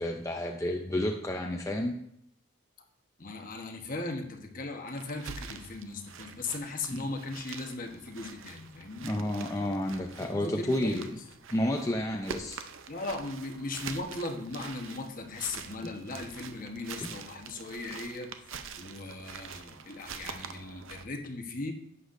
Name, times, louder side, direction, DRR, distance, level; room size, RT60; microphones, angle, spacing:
voice 1, 0.0-2.0 6.9-7.1 9.0-11.0 11.5-12.6, left 1 dB, 15° left, 2 dB, 0.5 m, -30 dB
voice 2, 3.2-9.1 10.2-11.1 12.9-18.3 18.8-21.7, left 2 dB, 45° left, 3 dB, 1.1 m, -38 dB
sound 1, 4.9-21.0, right 6 dB, 75° right, 0.6 m, -45 dB
11.0 x 8.2 x 2.6 m, 0.76 s
head